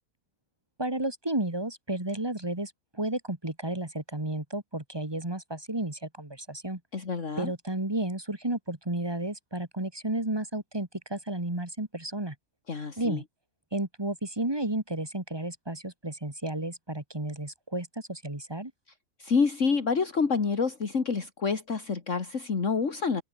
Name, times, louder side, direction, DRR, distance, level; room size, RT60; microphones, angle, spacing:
voice 1, 0.8-6.8 7.4-12.4 13.0-13.2 13.7-18.7, right 1 dB, 15° right, 2.3 m, -32 dB
voice 2, 6.9-7.5 12.7-13.2 19.2-23.2, left 5 dB, 55° left, 2.3 m, -27 dB
omnidirectional pair, 1.5 m